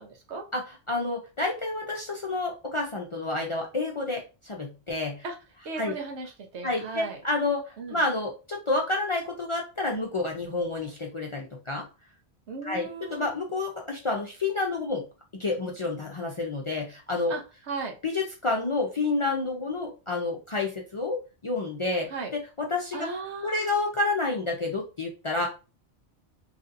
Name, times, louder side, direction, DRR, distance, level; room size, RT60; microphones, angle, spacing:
voice 1, 0.0-0.4 5.2-5.4 5.6-7.2 7.8-8.0 12.5-13.5 17.3-17.9 22.1-22.3 22.9-23.7, right 4 dB, 85° right, 3 dB, 1.1 m, -36 dB
voice 2, 0.5-5.2 5.8-5.9 6.6-11.9 12.6-15.1 15.4-17.3 18.0-23.1 23.4-25.5, left 3 dB, 45° left, -1 dB, 0.4 m, -29 dB
3.2 x 2.6 x 2.5 m, 0.31 s
omnidirectional pair, 1.1 m